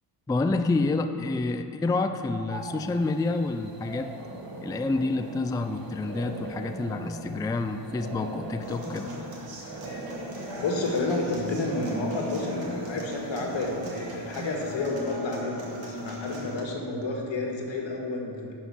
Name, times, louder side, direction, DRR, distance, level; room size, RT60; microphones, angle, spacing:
voice 1, 0.3-4.1 4.6-9.1, left 3 dB, 10° left, 8 dB, 0.3 m, -28 dB
sound 1, 2.5-14.9, right 2 dB, 75° right, 1.5 m, -41 dB
Human voice / Acoustic guitar, 8.6-16.6, left 1 dB, 55° right, 2.5 m, -38 dB
voice 2, 10.6-18.6, left 2 dB, 80° left, 0 dB, 1.8 m, -30 dB
11.0 x 5.8 x 6.2 m, 2.5 s
cardioid pair, 90°, 44 cm